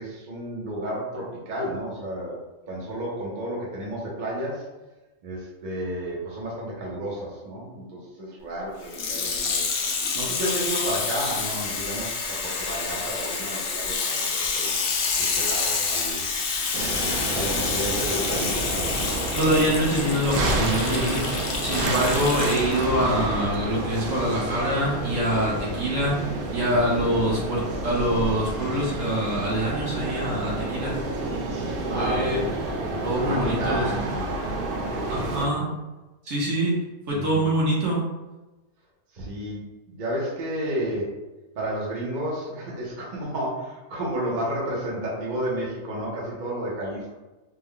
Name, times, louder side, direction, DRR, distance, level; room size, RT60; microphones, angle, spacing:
voice 1, 0.0-2.4 2.7-4.6 5.2-9.7 10.1-14.7 15.1-16.2 17.3-18.8 26.6-26.9 31.9-34.5 34.9-35.6 37.1-37.5 39.1-41.2 41.5-47.1, right 1 dB, 40° right, -5 dB, 0.7 m, -32 dB
Water tap faucet / Sink (filling or washing), 8.8-22.8 23.5-23.6, left 5 dB, 70° left, 0.6 m, -28 dB
sound 1, 16.7-35.4, right 2 dB, 80° right, 1.1 m, -29 dB
voice 2, 19.4-26.2 26.5-30.9 31.9-32.4 33.0-34.1 35.1-35.7 36.2-36.8 37.1-38.0, right 1 dB, 60° right, -4 dB, 1.2 m, -25 dB
3.4 x 2.1 x 3.6 m, 1.1 s
omnidirectional pair, 1.6 m